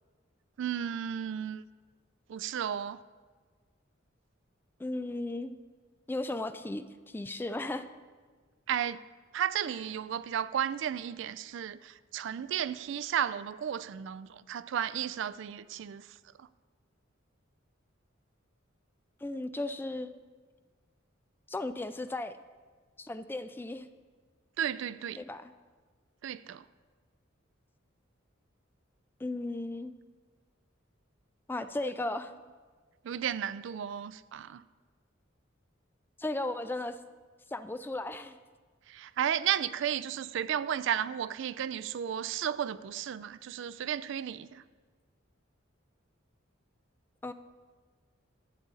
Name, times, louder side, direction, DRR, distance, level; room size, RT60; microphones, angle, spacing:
voice 1, 0.6-1.6 2.3-3.0 8.7-9.0 9.3-16.0 24.6-25.2 26.2-26.6 33.0-34.6 38.9-44.6, right 9 dB, 65° right, 0.3 m, -33 dB
voice 2, 4.8-5.6 6.1-7.9 19.2-20.1 21.5-22.4 23.0-23.9 25.2-25.5 29.2-29.9 31.5-32.3 36.2-37.0 37.5-38.4 47.2-47.3, left 2 dB, 10° left, 0.3 m, -35 dB
11.5 x 8.8 x 4.0 m
head